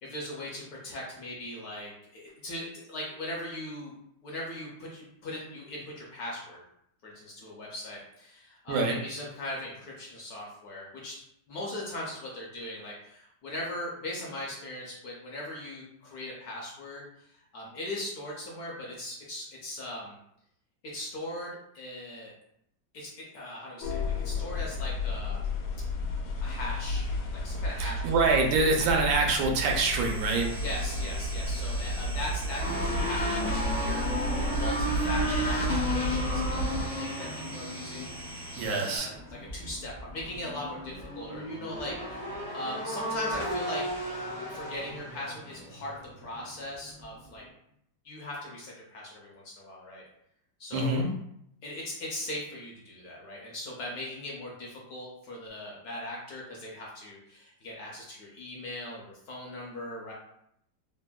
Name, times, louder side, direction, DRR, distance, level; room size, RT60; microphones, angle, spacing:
voice 1, 0.0-4.0 4.2-6.6 7.0-11.2 11.5-17.0 17.5-20.2 20.8-22.3 22.9-25.4 26.4-27.1 27.4-28.1 30.6-38.2 38.6-43.9 44.5-47.4 48.0-50.0 50.6-51.0 51.6-60.1, left 1 dB, 70° left, -3 dB, 0.9 m, -39 dB
sound 1, 23.8-36.9, left 1 dB, 85° left, 1.3 m, -32 dB
voice 2, 27.8-30.5 38.6-39.1 50.7-51.1, right 3 dB, 85° right, 1 dB, 1.3 m, -25 dB
sound 2, 29.6-39.0, right 1 dB, 70° right, 0.9 m, -43 dB
sound 3, 32.6-46.6 46.9-47.2, equal, 50° left, 0.5 m, -34 dB
3.4 x 2.1 x 2.2 m, 0.75 s
omnidirectional pair, 2.0 m